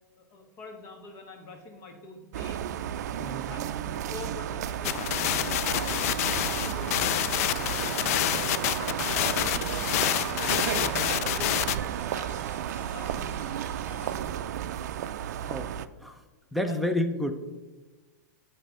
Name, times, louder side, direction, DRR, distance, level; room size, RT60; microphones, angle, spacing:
voice 1, 0.2-2.6 3.5-6.1 6.4-8.8 9.1-13.5 13.9-14.5 16.6-16.8, left 3 dB, 35° left, 3 dB, 1.4 m, -45 dB
sound 1, 2.3-15.9, right 10 dB, 65° right, 0.4 m, -33 dB
voice 2, 3.2-3.7 15.4-15.7 16.0-16.2 16.5-17.3, left 1 dB, ahead, 4 dB, 0.6 m, -30 dB
sound 2, 4.8-11.8, left 13 dB, 55° left, 0.3 m, -28 dB
sound 3, 9.1-14.3, right 4 dB, 20° right, 1.4 m, -47 dB
9.8 x 3.4 x 6.3 m, 1.2 s
hypercardioid pair, 140°, 10 cm